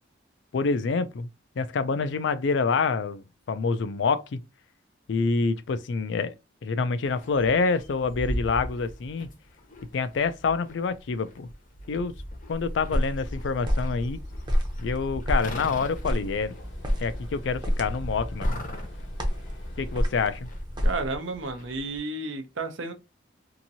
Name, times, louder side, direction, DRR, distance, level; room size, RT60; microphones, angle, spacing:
voice 1, 0.5-1.3 1.6-4.4 5.1-6.3 6.6-9.3 9.9-11.5 11.9-12.1 12.5-14.2 14.8-16.6 17.0-18.6 19.8-20.5, left 4 dB, 65° left, 0.4 m, -27 dB
sound 1, 7.0-22.0, equal, 45° left, 0.8 m, -41 dB
sound 2, 12.5-21.2, equal, 25° right, 0.7 m, -30 dB
sound 3, 15.4-20.4, left 1 dB, 85° left, 1.2 m, -49 dB
voice 2, 20.8-22.9, right 3 dB, 85° right, 0.7 m, -32 dB
2.8 x 2.6 x 2.7 m
head